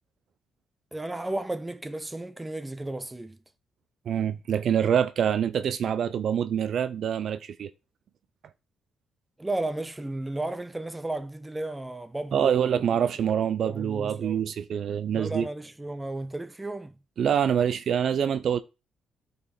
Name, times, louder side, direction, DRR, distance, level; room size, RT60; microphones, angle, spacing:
voice 1, 0.9-3.4 9.4-14.4 15.1-17.0, right 2 dB, 15° right, 0.7 m, -34 dB
voice 2, 4.1-7.7 12.3-15.5 17.2-18.6, right 8 dB, 60° right, 0.5 m, -25 dB
9.5 x 4.2 x 4.2 m
cardioid pair, 90°, 0 cm